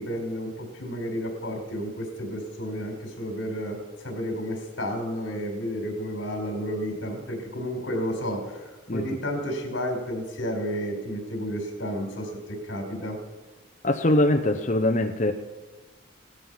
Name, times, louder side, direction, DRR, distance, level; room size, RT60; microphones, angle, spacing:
voice 1, 0.0-13.2, equal, 65° left, 3 dB, 4.5 m, -31 dB
voice 2, 13.8-15.3, left 1 dB, 35° left, 4 dB, 0.8 m, -22 dB
17.5 x 13.5 x 5.7 m, 1.3 s
head